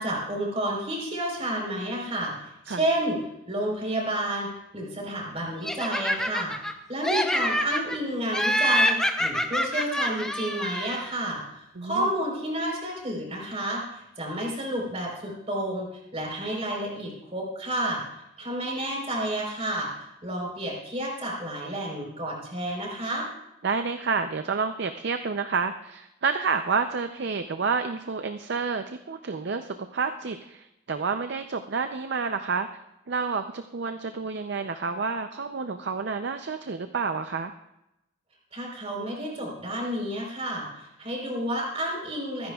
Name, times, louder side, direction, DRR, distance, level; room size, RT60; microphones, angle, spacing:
voice 1, 0.0-3.2 3.5-6.5 6.9-11.4 11.8-18.0 18.4-19.9 20.2-23.3 38.5-42.5, right 1 dB, 30° right, -1 dB, 4.0 m, -30 dB
Laughter, 5.6-6.7 7.0-8.0 8.3-11.1, equal, 5° left, 0.7 m, -26 dB
voice 2, 11.8-12.1 23.6-32.8 33.1-37.5, right 5 dB, 55° right, 8 dB, 0.5 m, -29 dB
24.5 x 10.5 x 2.4 m, 0.88 s
head